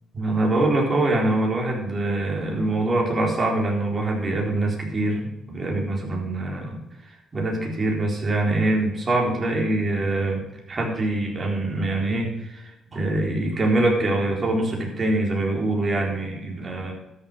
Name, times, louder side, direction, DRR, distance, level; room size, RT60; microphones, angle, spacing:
voice 1, 0.1-10.4 10.7-16.9, right 2 dB, 35° right, 0 dB, 4.1 m, -24 dB
12.5 x 7.2 x 6.8 m, 0.90 s
cardioid pair, 90°, 0 cm